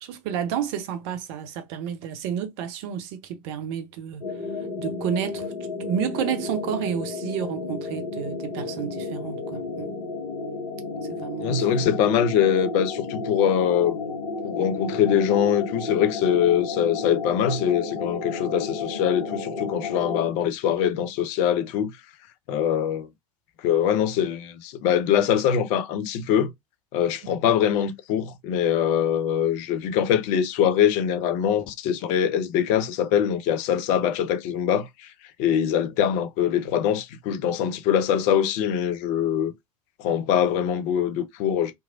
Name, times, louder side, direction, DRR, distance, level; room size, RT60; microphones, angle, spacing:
voice 1, 0.0-4.3 4.8-5.5 5.8-9.9 11.1-11.8, right 9 dB, 45° right, 0.7 m, -31 dB
sound 1, 4.2-20.3, left 3 dB, 65° left, 1.1 m, -32 dB
voice 2, 11.4-14.0 14.4-21.9 22.5-23.1 23.6-26.5 26.9-35.1 35.4-39.5 40.0-41.7, left 9 dB, 40° left, 0.5 m, -23 dB
2.9 x 2.6 x 2.4 m
figure-of-eight pair, 85°, 19 cm